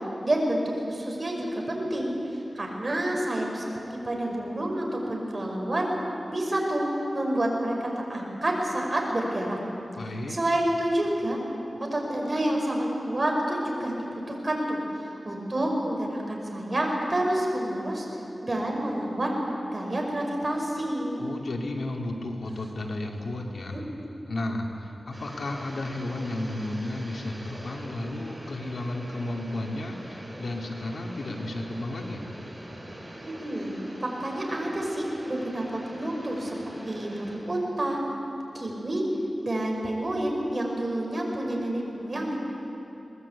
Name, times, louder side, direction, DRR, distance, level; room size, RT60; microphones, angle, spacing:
voice 1, 0.2-0.6 0.9-3.6 3.9-5.9 6.3-6.8 7.1-9.6 10.3-11.4 11.9-14.8 15.2-18.1 18.4-19.3 19.7-21.2 23.7-23.8 33.2-36.6 36.9-38.0 38.5-39.0 39.4-42.4, right 1 dB, 35° right, 0 dB, 5.3 m, -28 dB
voice 2, 9.9-10.4 21.2-23.8 24.3-32.3, left 1 dB, 80° left, 1 dB, 2.5 m, -33 dB
Air conditioning Vent outside, 25.1-37.4, right 1 dB, 15° right, 6.7 m, -44 dB
22.5 x 20.0 x 8.5 m, 2.9 s
wide cardioid pair, 85°, 0 cm